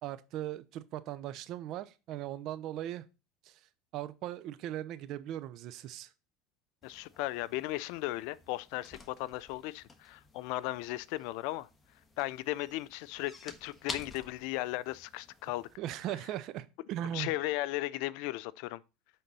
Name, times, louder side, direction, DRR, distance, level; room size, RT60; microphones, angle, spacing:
voice 1, 0.0-3.0 3.9-6.1 15.8-17.3, right 12 dB, 55° right, 0.7 m, -38 dB
voice 2, 6.8-11.7 12.2-15.7 17.1-18.8, left 17 dB, 65° left, 0.4 m, -36 dB
sound 1, 6.8-15.8, left 3 dB, 20° left, 1.4 m, -50 dB
9.3 x 3.8 x 4.1 m
hypercardioid pair, 90°, 0 cm